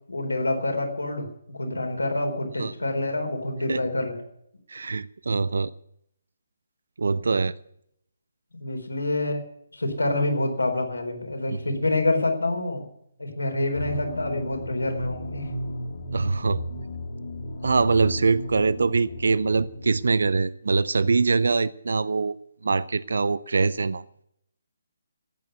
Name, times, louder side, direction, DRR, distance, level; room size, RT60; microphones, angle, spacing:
voice 1, 0.1-1.3 1.5-4.2 8.6-9.4 9.7-12.9 13.2-15.5, left 2 dB, 85° left, 5 dB, 4.1 m, -27 dB
voice 2, 4.7-5.7 7.0-7.5 16.1-16.6 17.6-22.3 22.6-24.0, right 4 dB, 65° right, 19 dB, 0.5 m, -23 dB
sound 1, 13.7-20.4, left 1 dB, 60° left, 3.2 m, -34 dB
14.5 x 9.3 x 9.3 m, 0.75 s
figure-of-eight pair, 145°, 0 cm